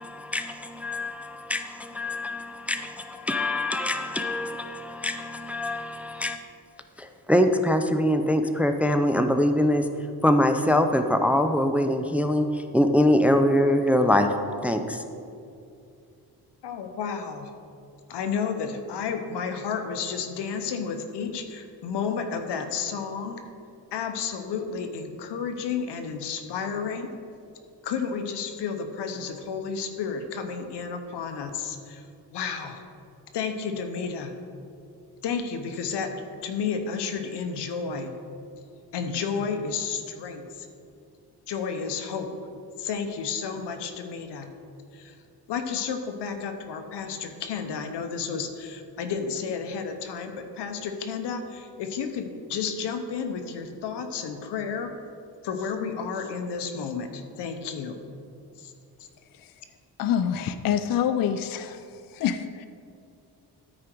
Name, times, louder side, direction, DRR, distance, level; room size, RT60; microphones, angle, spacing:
voice 1, 0.0-6.4 7.0-14.3 14.6-15.0, left 1 dB, 5° right, 7 dB, 0.4 m, -24 dB
voice 2, 16.6-17.5 18.1-23.4 23.9-27.1 27.8-32.0 32.3-32.8 33.3-34.3 35.2-36.1 36.4-38.2 38.9-40.7 41.5-42.3 42.8-44.5 44.9-45.2 45.5-54.9 55.4-58.0 58.6-58.7, left 6 dB, 85° left, 7 dB, 0.9 m, -31 dB
voice 3, 60.0-61.9 62.1-62.7, left 9 dB, 60° left, 11 dB, 0.5 m, -26 dB
13.0 x 5.0 x 4.5 m, 2.5 s
cardioid pair, 95°, 40 cm